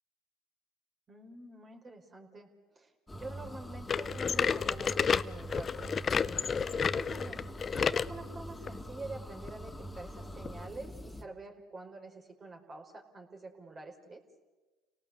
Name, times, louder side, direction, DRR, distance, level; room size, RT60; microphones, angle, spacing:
voice 1, 1.1-2.5 2.7-5.9 6.3-7.4 7.7-14.2, right 2 dB, 35° right, 3 dB, 4.6 m, -47 dB
sound 1, 3.1-11.2, equal, 10° left, 2.6 m, -44 dB
sound 2, 3.9-8.1 8.7-8.8 9.5-9.6 10.4-10.5, left 6 dB, 35° left, 0.7 m, -30 dB
29.5 x 18.0 x 8.2 m, 1.2 s
hypercardioid pair, 75°, 0 cm